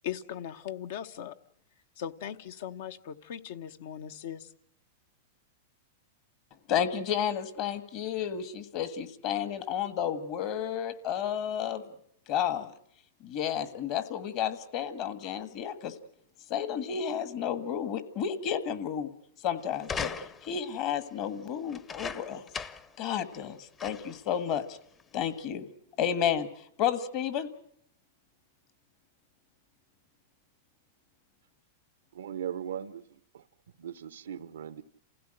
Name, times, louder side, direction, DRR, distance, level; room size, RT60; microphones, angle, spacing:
voice 1, 0.0-1.4 2.0-4.5, left 9 dB, 65° left, 1.0 m, -39 dB
voice 2, 6.7-11.8 12.3-12.7 13.2-15.9 16.5-19.1 19.4-20.1 20.4-22.4 23.0-24.8 25.1-25.7 26.0-26.5 26.8-27.5, left 9 dB, 45° left, 1.6 m, -31 dB
sound 1, 19.8-20.6 21.7-23.0 23.3-23.4 23.8-24.2 25.0-25.1, left 5 dB, 25° left, 0.8 m, -38 dB
voice 3, 32.1-33.4 33.8-34.8, right 9 dB, 90° right, 0.9 m, -39 dB
28.0 x 16.0 x 7.8 m
hypercardioid pair, 135°, 0 cm